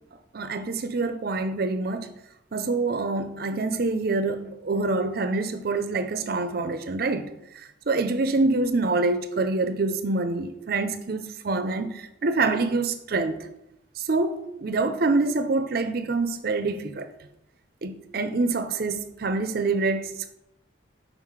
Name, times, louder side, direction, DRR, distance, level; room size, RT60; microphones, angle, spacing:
voice 1, 0.3-2.2 2.5-13.4 14.0-17.1 17.8-20.3, right 3 dB, 50° right, 0.5 m, -26 dB
5.6 x 5.2 x 4.9 m
head